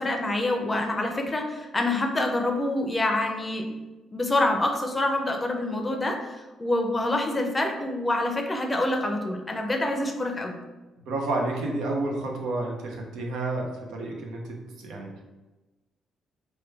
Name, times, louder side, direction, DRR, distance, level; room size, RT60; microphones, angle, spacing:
voice 1, 0.0-3.7 4.1-10.6, left 2 dB, 20° left, 3 dB, 0.5 m, -26 dB
voice 2, 11.0-15.2, right 2 dB, 85° right, 1 dB, 0.6 m, -30 dB
3.1 x 2.2 x 3.2 m, 1.1 s
cardioid pair, 90°, 0 cm